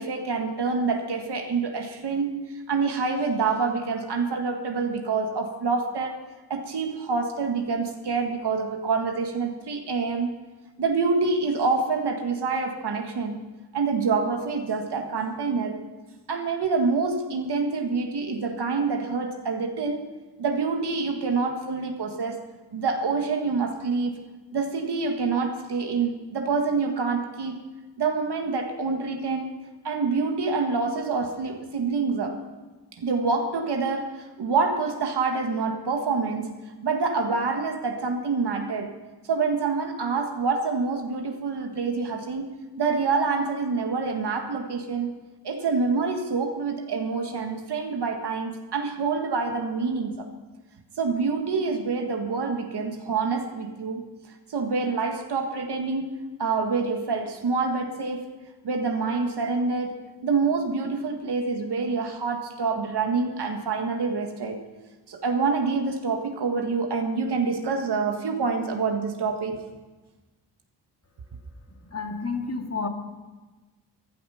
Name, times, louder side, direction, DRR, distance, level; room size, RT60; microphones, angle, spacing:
voice 1, 0.0-6.2 6.5-10.3 10.8-13.4 13.7-15.8 16.3-20.1 20.4-22.4 22.7-24.1 24.5-27.6 28.0-29.5 29.8-32.4 33.0-36.5 36.8-39.0 39.3-45.1 45.4-50.3 51.0-54.0 54.5-58.3 58.6-64.6 65.1-69.6, right 4 dB, 65° right, 4 dB, 1.7 m, -26 dB
voice 2, 71.9-72.9, left 4 dB, 35° left, 4 dB, 2.1 m, -30 dB
15.0 x 12.0 x 5.7 m, 1.2 s
cardioid pair, 65°, 42 cm